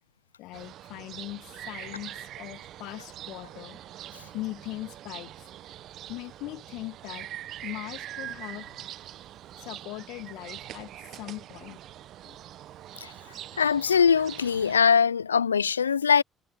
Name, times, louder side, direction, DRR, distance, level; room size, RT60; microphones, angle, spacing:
voice 1, 0.4-3.8 4.3-5.3 6.1-7.3 7.6-8.9 9.6-11.8 12.2-12.4, left 19 dB, 70° left, 1.8 m, -40 dB
sound 1, 0.5-14.8, right 12 dB, 60° right, 0.9 m, -43 dB
voice 2, 13.6-16.2, left 6 dB, 90° left, 0.4 m, -22 dB
hypercardioid pair, 50°, 0 cm